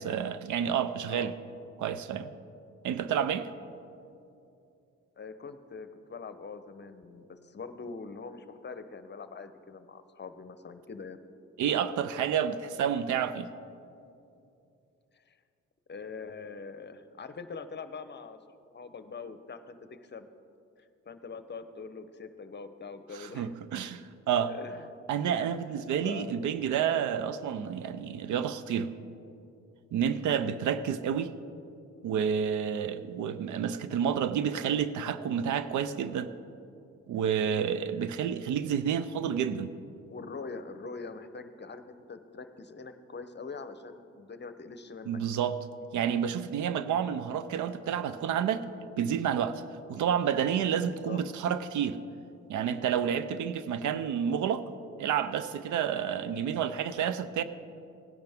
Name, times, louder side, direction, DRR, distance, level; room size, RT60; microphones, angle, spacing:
voice 1, 0.0-1.3 1.8-2.3 2.8-3.5 11.6-13.5 23.3-24.5 25.1-28.9 29.9-31.3 32.0-36.3 37.1-39.7 45.1-45.6 45.9-48.7 49.0-49.6 49.9-52.0 52.5-54.7 55.0-57.4, right 8 dB, 80° right, 13 dB, 0.6 m, -29 dB
voice 2, 5.2-11.2 15.3-15.4 15.9-18.4 18.7-20.3 20.8-23.5 24.4-24.9 25.3-25.5 26.0-26.4 40.1-45.2 50.6-51.2, left 4 dB, 35° left, 11 dB, 0.8 m, -43 dB
17.0 x 10.5 x 3.5 m, 2.6 s
cardioid pair, 65°, 30 cm